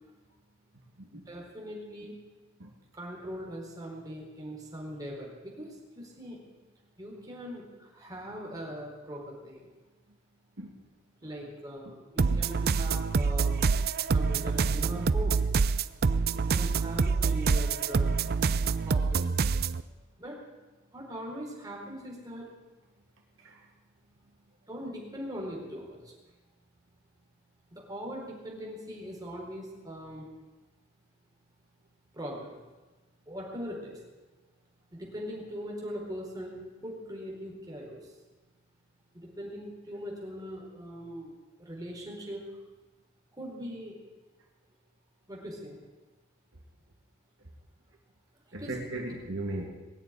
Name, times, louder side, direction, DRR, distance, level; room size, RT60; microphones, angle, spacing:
voice 1, 1.1-2.1 2.9-6.4 7.0-9.7 11.2-13.7 14.1-15.4 16.3-18.4 18.8-19.3 20.2-20.4 20.9-22.5 24.7-26.1 27.7-30.3 32.1-32.6 33.3-34.0 34.9-38.1 39.1-42.4 43.3-43.9 45.3-45.8 48.5-48.8, equal, 20° right, -2 dB, 4.3 m, -41 dB
sound 1, 12.2-19.8, right 4 dB, 50° right, 0.5 m, -26 dB
voice 2, 48.5-49.7, right 1 dB, 70° right, 0 dB, 2.1 m, -37 dB
20.0 x 7.3 x 9.8 m, 1.2 s
head